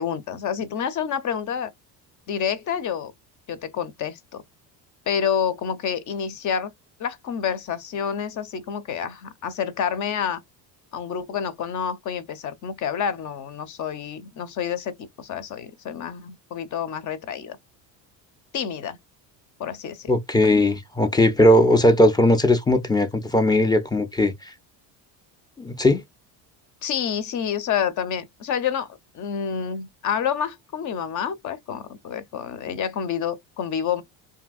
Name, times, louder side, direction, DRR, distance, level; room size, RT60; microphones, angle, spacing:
voice 1, 0.0-1.7 2.3-3.1 3.5-4.4 5.1-6.7 7.0-10.4 10.9-17.6 18.5-19.0 19.6-20.1 20.4-20.6 26.8-34.0, left 8 dB, 45° left, 0.8 m, -28 dB
voice 2, 20.1-24.5 25.6-26.0, left 1 dB, 10° left, 0.6 m, -18 dB
2.8 x 2.8 x 2.3 m
supercardioid pair, 105°, 42 cm